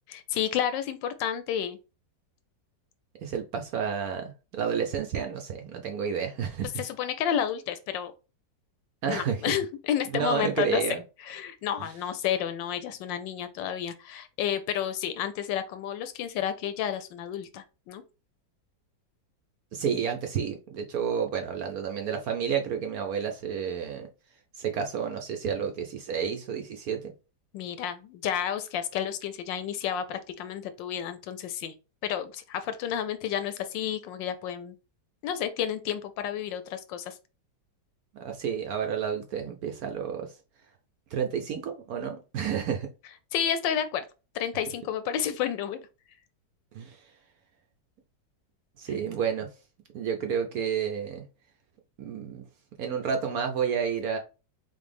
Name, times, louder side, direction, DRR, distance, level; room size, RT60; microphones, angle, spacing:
voice 1, 0.1-1.8 6.8-8.1 9.1-10.8 11.2-18.0 27.5-31.7 32.0-34.7 35.2-37.2 43.3-44.0 44.3-45.8, left 9 dB, 85° left, 1.3 m, -31 dB
voice 2, 3.2-6.8 9.0-9.5 10.1-11.0 19.7-24.1 24.6-27.1 38.1-40.3 41.1-42.9 46.7-47.0 48.8-49.5 49.9-51.3 52.0-52.4 52.8-54.2, right 7 dB, 65° right, 1.0 m, -30 dB
4.0 x 3.2 x 3.3 m
omnidirectional pair, 2.0 m